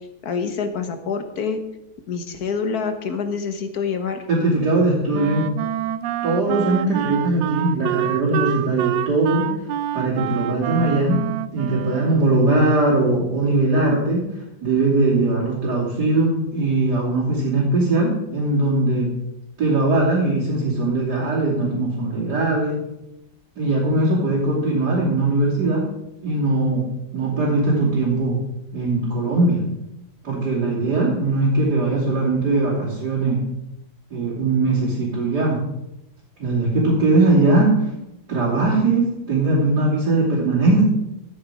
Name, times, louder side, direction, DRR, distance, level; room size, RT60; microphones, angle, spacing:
voice 1, 0.2-1.6 2.1-4.2, left 5 dB, 60° left, 8 dB, 1.6 m, -26 dB
voice 2, 4.3-5.5 6.2-9.5 9.9-11.2 11.5-14.3 14.6-19.1 19.6-22.8 23.6-25.9 26.2-28.4 28.7-29.6 30.2-33.4 34.1-35.6 36.4-37.9 38.3-40.8, right 2 dB, 60° right, -7 dB, 3.7 m, -20 dB
Wind instrument woodwind instrument, 5.1-12.5, right 12 dB, 85° right, 1.3 m, -27 dB
14.0 x 9.1 x 5.0 m, 0.90 s
omnidirectional pair, 2.0 m